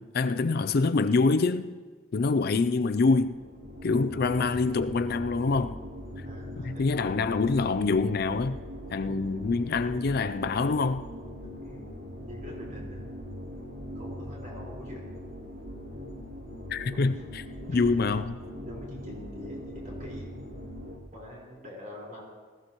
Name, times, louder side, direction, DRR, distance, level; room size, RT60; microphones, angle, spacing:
voice 1, 0.0-1.7 2.1-3.4 3.8-5.8 6.6-8.6 8.9-11.0 16.7-18.3, left 4 dB, 50° left, 0.4 m, -25 dB
sound 1, 3.0-21.0, equal, 70° right, 2.8 m, -41 dB
voice 2, 6.2-7.0 10.0-10.1 11.6-13.2 13.9-15.1 16.9-17.2 17.7-18.2 18.6-20.4 21.1-22.2, left 1 dB, 40° right, 4.5 m, -44 dB
19.5 x 15.0 x 3.0 m
head